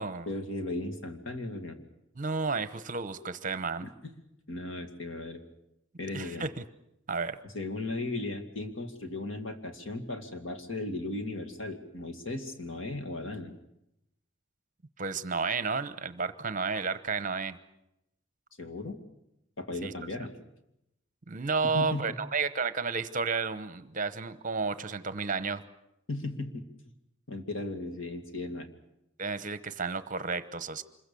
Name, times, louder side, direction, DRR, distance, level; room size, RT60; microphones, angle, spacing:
voice 1, 0.3-1.8 3.8-4.2 4.5-5.4 6.0-6.4 7.5-13.5 18.6-19.0 19.6-20.4 21.7-22.1 26.1-26.6 27.3-28.7, left 2 dB, 70° left, 6 dB, 2.3 m, -36 dB
voice 2, 2.2-3.9 6.1-6.6 7.1-7.4 15.0-17.6 19.8-19.9 21.3-25.6 29.2-30.8, right 4 dB, 40° right, 13 dB, 0.9 m, -32 dB
26.0 x 22.0 x 7.0 m, 0.85 s
head